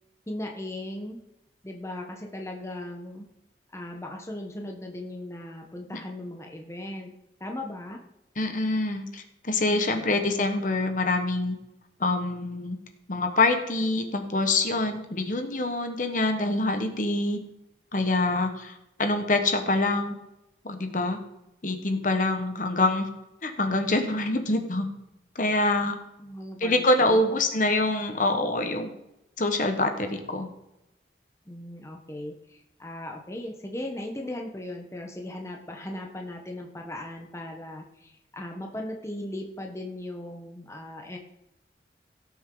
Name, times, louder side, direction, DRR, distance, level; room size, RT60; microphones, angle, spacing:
voice 1, 0.3-1.2 1.6-3.3 3.7-7.1 7.4-8.0 9.7-10.2 26.2-27.2 31.5-41.2, left 1 dB, 15° left, 2 dB, 1.0 m, -38 dB
voice 2, 8.4-11.6 12.0-12.8 13.1-17.4 17.9-20.2 20.6-21.2 21.6-23.1 23.4-24.9 25.3-25.9 26.6-28.9 29.4-30.5, left 2 dB, 50° left, 6 dB, 1.3 m, -25 dB
17.0 x 7.1 x 3.9 m, 0.89 s
head